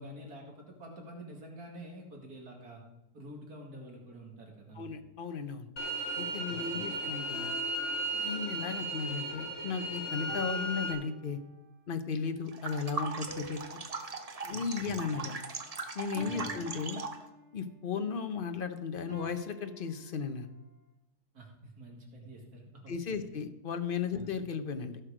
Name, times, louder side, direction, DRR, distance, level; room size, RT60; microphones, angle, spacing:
voice 1, 0.0-2.8 3.1-4.9 6.5-6.9 14.5-15.0 16.2-16.6 21.3-23.3 24.1-24.3, right 1 dB, 70° right, 0 dB, 2.7 m, -48 dB
voice 2, 4.7-5.7 6.2-7.6 8.1-11.4 11.9-13.6 14.4-15.4 15.9-17.0 17.5-20.5 22.9-25.0, left 5 dB, 45° left, 8 dB, 0.8 m, -35 dB
sound 1, 5.8-10.9, right 1 dB, 60° left, 2.0 m, -35 dB
sound 2, 7.3-8.7 10.3-11.7 13.3-15.6 16.1-17.7 19.1-20.7, right 1 dB, 5° left, 1.9 m, -48 dB
sound 3, 12.5-17.3, right 4 dB, 35° right, 0.6 m, -39 dB
15.5 x 6.3 x 5.0 m, 0.94 s
omnidirectional pair, 1.7 m